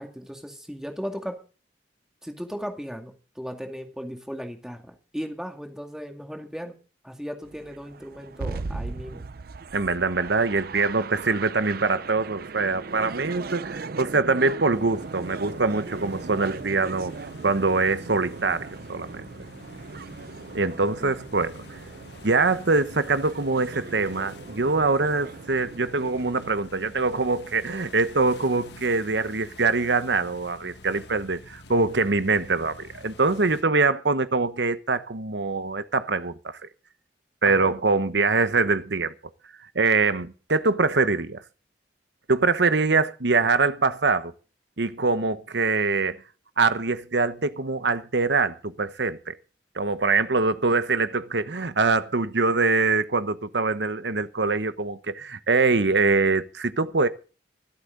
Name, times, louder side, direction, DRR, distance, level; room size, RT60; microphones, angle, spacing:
voice 1, 0.0-1.4 2.2-6.8 7.0-9.3 21.0-21.2 37.5-37.7, equal, 5° right, 2.2 m, -36 dB
sound 1, 7.4-26.6, right 4 dB, 55° right, 0.6 m, -39 dB
voice 2, 9.7-17.1 17.4-19.3 20.5-21.6 22.2-36.7 37.4-39.1 39.7-41.4 42.3-44.3 44.8-46.2 46.6-49.3 49.7-57.1, right 3 dB, 75° right, 1.1 m, -24 dB
sound 2, 14.7-33.6, left 2 dB, 75° left, 1.8 m, -48 dB
24.5 x 8.4 x 4.0 m
head